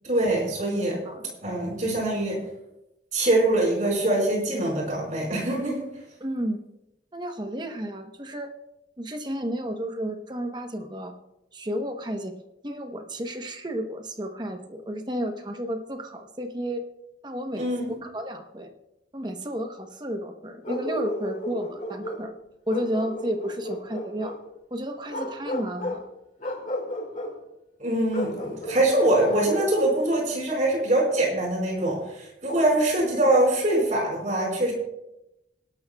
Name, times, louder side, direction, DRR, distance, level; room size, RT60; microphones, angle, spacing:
voice 1, 0.1-1.0 1.4-2.4 3.1-5.9 17.5-18.0 27.8-34.7, right 1 dB, 40° right, -1 dB, 4.9 m, -23 dB
voice 2, 0.7-1.3 6.2-6.6 7.1-8.5 9.0-11.1 11.5-12.4 12.6-16.9 17.2-18.7 19.1-22.3 22.7-24.3 24.7-26.0, equal, 25° right, 5 dB, 0.9 m, -32 dB
Bark, 20.6-22.3 22.7-24.4 25.1-26.0 26.4-27.3 28.1-29.8, left 1 dB, 45° left, 2.1 m, -33 dB
26.0 x 12.0 x 2.3 m, 0.90 s
head